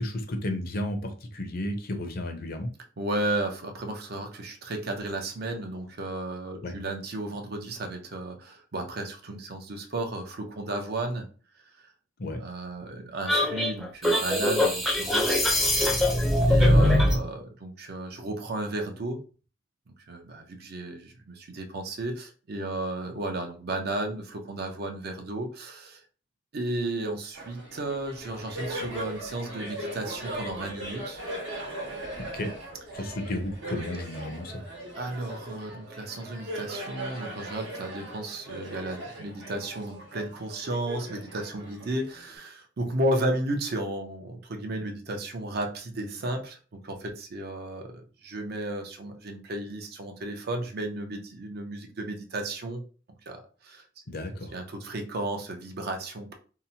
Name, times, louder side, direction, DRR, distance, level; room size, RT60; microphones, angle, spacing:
voice 1, 0.0-2.7 6.6-6.7 12.2-12.4 32.3-32.5 32.9-34.6 54.1-54.5, left 1 dB, 50° left, 5 dB, 0.5 m, -33 dB
voice 2, 3.0-11.3 11.8-11.9 12.4-15.4 15.7-16.1 16.5-19.2 19.9-26.0 26.5-31.2 34.9-52.8 53.3-53.9 54.5-56.3, right 1 dB, 55° right, 4 dB, 0.5 m, -33 dB
sound 1, 13.3-17.2, left 1 dB, ahead, 0.5 m, -22 dB
Laughter, 27.3-42.3, right 1 dB, 80° right, 1.1 m, -39 dB
2.8 x 2.0 x 2.7 m, 0.36 s
head